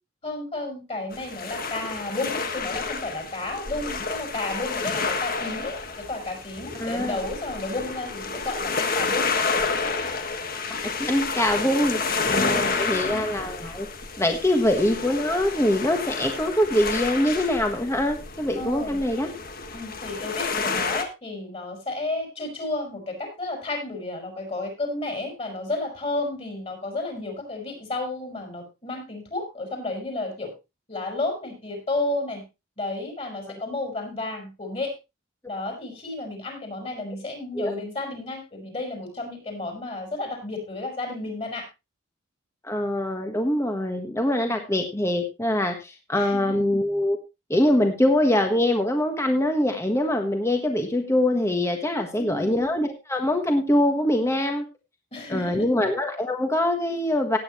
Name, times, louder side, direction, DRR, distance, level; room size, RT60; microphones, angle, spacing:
voice 1, 0.2-5.7 6.1-9.3 12.3-13.3 18.5-19.0 19.7-30.5 30.9-32.4 32.8-34.9 35.5-41.7 46.1-46.5 52.1-52.6 55.1-55.6, left 2 dB, 30° left, 3 dB, 4.8 m, -32 dB
sound 1, 1.1-21.0, left 4 dB, 45° left, 1.6 m, -30 dB
voice 2, 6.8-7.2 11.0-13.9 14.2-19.3 37.6-37.7 42.6-47.2 47.5-54.6 55.3-57.4, left 1 dB, 15° left, 4 dB, 1.4 m, -23 dB
17.0 x 8.9 x 3.0 m, 0.25 s
head